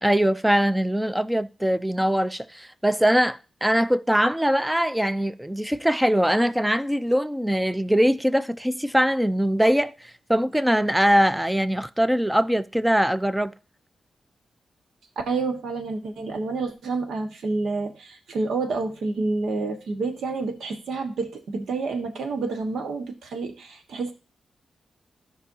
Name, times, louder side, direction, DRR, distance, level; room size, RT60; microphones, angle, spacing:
voice 1, 0.0-9.9 10.3-13.5, equal, 5° right, 0.5 m, -22 dB
voice 2, 15.3-24.1, right 3 dB, 90° right, 1.4 m, -29 dB
14.5 x 5.5 x 2.8 m
wide cardioid pair, 120°, 0 cm